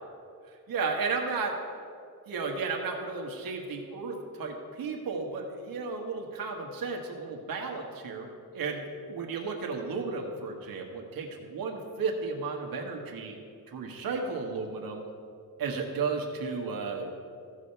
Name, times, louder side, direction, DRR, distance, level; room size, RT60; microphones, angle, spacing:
voice 1, 0.7-1.5 2.3-8.3 8.5-13.4 13.7-15.1 15.6-17.1, right 4 dB, 70° right, 1 dB, 1.3 m, -33 dB
15.0 x 5.0 x 5.7 m, 2.4 s
cardioid pair, 130°, 36 cm